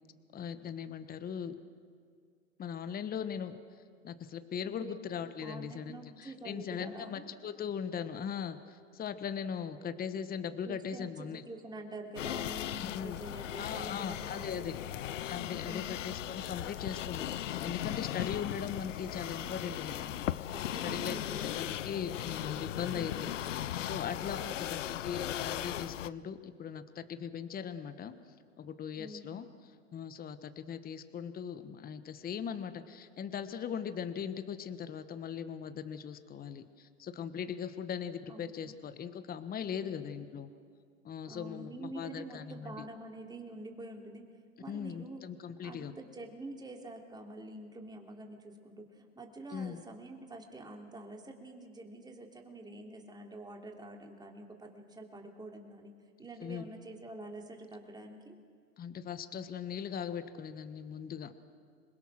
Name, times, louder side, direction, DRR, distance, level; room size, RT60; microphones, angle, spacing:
voice 1, 0.3-1.6 2.6-3.6 4.0-11.4 12.8-13.2 13.6-14.7 15.2-20.2 20.8-23.3 23.8-24.4 24.7-28.1 28.6-29.5 29.9-40.5 41.0-42.9 44.7-45.9 49.5-49.8 56.4-56.6 58.8-61.3, left 7 dB, 25° left, 11 dB, 1.3 m, -39 dB
voice 2, 5.4-7.3 10.6-14.9 15.6-15.9 20.5-21.4 22.9-23.3 24.4-24.6 29.0-29.3 38.3-38.7 39.8-40.1 41.3-44.3 44.6-45.2 45.6-55.9 56.2-58.3, right 2 dB, 10° right, 2 dB, 3.1 m, -47 dB
sound 1, 12.2-26.1, left 12 dB, 90° left, 0.7 m, -38 dB
27.0 x 21.5 x 6.4 m, 2.1 s
hypercardioid pair, 110°, 36 cm